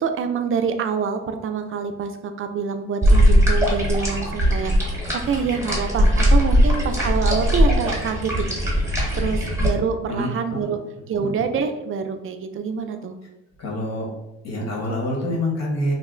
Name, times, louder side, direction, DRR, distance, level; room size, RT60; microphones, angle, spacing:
voice 1, 0.0-4.7 5.1-8.6 9.2-10.8 11.1-13.2, right 6 dB, 45° right, 7 dB, 0.4 m, -26 dB
sound 1, 3.0-9.7, equal, 10° right, 1.0 m, -19 dB
voice 2, 10.1-10.7 11.2-11.3 13.6-14.1 14.4-15.9, left 1 dB, 60° left, -3 dB, 1.3 m, -26 dB
2.8 x 2.0 x 3.7 m, 0.98 s
cardioid pair, 90°, 30 cm